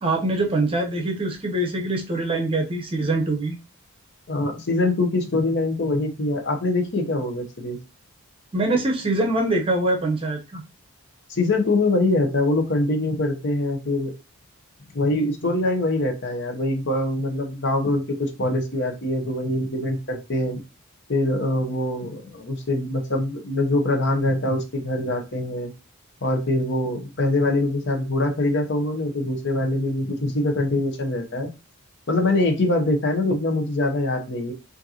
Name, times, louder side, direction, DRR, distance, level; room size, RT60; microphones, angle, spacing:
voice 1, 0.0-3.5 8.5-10.6, right 2 dB, 25° right, 2 dB, 0.7 m, -23 dB
voice 2, 4.3-7.8 11.3-14.1 14.9-20.6 21.1-25.7 26.2-31.5 32.1-34.5, left 2 dB, 50° left, 4 dB, 0.8 m, -23 dB
5.1 x 2.6 x 2.8 m, 0.29 s
head